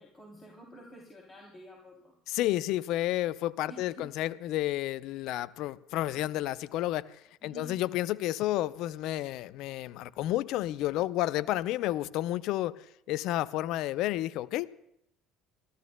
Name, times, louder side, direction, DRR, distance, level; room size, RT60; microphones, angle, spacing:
voice 1, 0.0-2.2 3.7-4.1 7.4-7.8, right 1 dB, 25° left, 0 dB, 3.0 m, -49 dB
voice 2, 2.3-7.1 7.4-12.8 13.1-14.7, left 15 dB, 65° left, 18 dB, 0.5 m, -31 dB
30.0 x 14.0 x 2.2 m, 0.78 s
hypercardioid pair, 60°, 0 cm